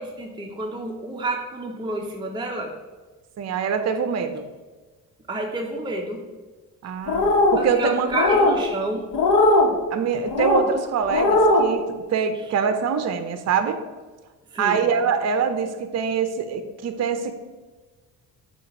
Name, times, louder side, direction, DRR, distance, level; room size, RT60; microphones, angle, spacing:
voice 1, 0.0-2.7 5.3-6.2 7.6-9.1 14.5-14.8, right 2 dB, 10° right, 0 dB, 0.8 m, -29 dB
voice 2, 3.4-4.4 6.8-7.2 7.5-8.1 9.9-11.8 12.1-13.8 14.6-17.3, right 6 dB, 45° right, 9 dB, 0.6 m, -24 dB
sound 1, 7.1-7.6 8.1-8.6 9.1-9.7 10.3-10.6 11.1-11.7, left 2 dB, 60° left, 1.2 m, -18 dB
7.5 x 2.6 x 5.4 m, 1.3 s
supercardioid pair, 70°, 37 cm